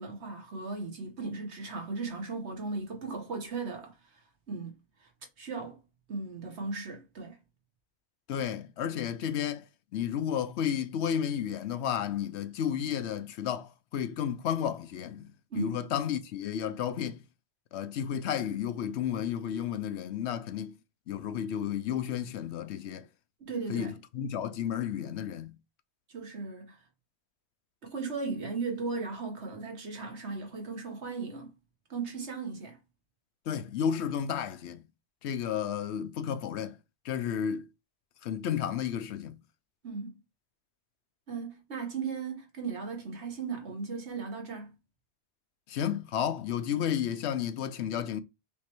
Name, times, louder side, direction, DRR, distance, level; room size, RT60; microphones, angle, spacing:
voice 1, 0.0-4.7 5.0-5.1 5.4-5.8 6.1-7.4 15.5-15.8 23.4-24.0 26.1-26.8 27.8-31.6 31.9-32.8 39.8-40.2 41.3-44.7, right 4 dB, 85° right, 1.6 m, -37 dB
voice 2, 8.3-9.7 9.9-15.3 15.5-17.2 17.7-20.7 21.1-23.0 23.7-25.5 33.5-34.8 35.2-36.8 37.0-37.7 38.2-39.4 45.7-48.2, left 9 dB, 85° left, 0.9 m, -32 dB
5.2 x 3.1 x 3.0 m
omnidirectional pair, 1.1 m